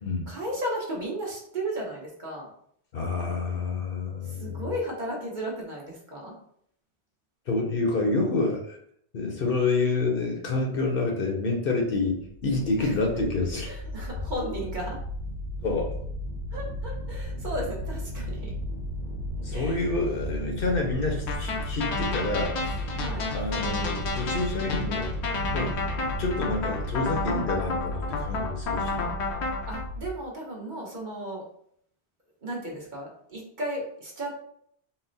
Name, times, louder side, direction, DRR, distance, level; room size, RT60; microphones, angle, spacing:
voice 1, 0.3-2.5 4.2-6.3 12.8-12.9 13.6-15.0 16.5-18.5 19.5-19.9 22.9-23.3 29.6-31.4 32.4-34.4, right 1 dB, 45° right, -3 dB, 1.1 m, -34 dB
voice 2, 2.9-4.6 7.5-8.8 9.1-13.7 15.6-15.9 19.4-22.8 23.3-25.9 26.2-29.1, left 3 dB, 60° left, 1 dB, 0.9 m, -28 dB
sound 1, 12.3-30.1, equal, 10° right, 0.9 m, -34 dB
sound 2, 21.3-29.8, left 3 dB, 85° left, 1.0 m, -31 dB
4.1 x 2.1 x 3.9 m, 0.66 s
omnidirectional pair, 1.1 m